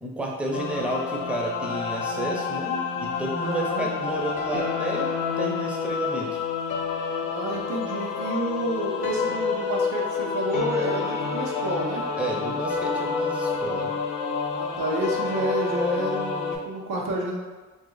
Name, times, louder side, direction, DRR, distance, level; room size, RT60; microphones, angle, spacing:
voice 1, 0.0-6.5 12.2-13.9, right 1 dB, 5° right, -1 dB, 0.6 m, -31 dB
sound 1, 0.5-16.6, left 5 dB, 85° left, 0.6 m, -28 dB
voice 2, 3.4-3.8 7.2-12.0 14.5-17.4, right 1 dB, 80° right, -1 dB, 0.8 m, -29 dB
2.8 x 2.6 x 3.8 m, 1.3 s
cardioid pair, 90°, 30 cm